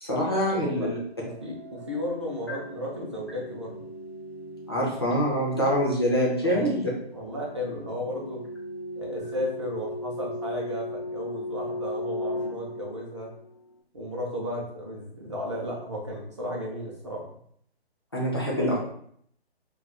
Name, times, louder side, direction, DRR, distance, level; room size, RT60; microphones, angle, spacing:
voice 1, 0.0-1.0 4.7-6.9 18.1-18.8, equal, 25° left, -4 dB, 0.4 m, -25 dB
voice 2, 0.5-0.9 1.2-3.9 6.4-6.7 7.1-8.4 9.0-13.3 13.9-17.2 18.7-18.8, left 1 dB, 30° right, -3 dB, 0.5 m, -34 dB
sound 1, 1.0-13.7, left 1 dB, 70° left, 0.7 m, -38 dB
2.3 x 2.3 x 3.7 m, 0.66 s
hypercardioid pair, 170°, 32 cm